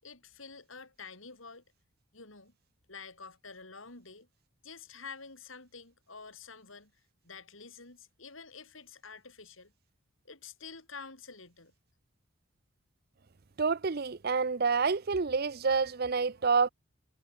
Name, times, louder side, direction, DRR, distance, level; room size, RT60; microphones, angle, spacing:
voice 1, 0.0-1.6 2.1-2.5 2.9-4.3 4.6-6.9 7.2-9.7 10.2-11.7, left 5 dB, 75° left, 5.2 m, -48 dB
voice 2, 13.6-16.7, right 5 dB, 50° right, 0.6 m, -28 dB
head